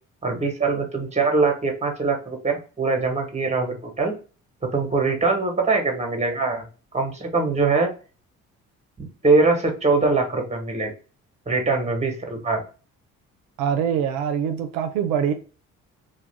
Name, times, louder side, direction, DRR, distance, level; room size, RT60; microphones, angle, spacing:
voice 1, 0.2-4.1 4.7-6.6 6.9-7.9 9.0-10.9 11.5-12.6, right 3 dB, 20° right, 1.1 m, -22 dB
voice 2, 13.6-15.3, right 8 dB, 85° right, 0.5 m, -24 dB
2.3 x 2.2 x 3.2 m
hypercardioid pair, 60°, 36 cm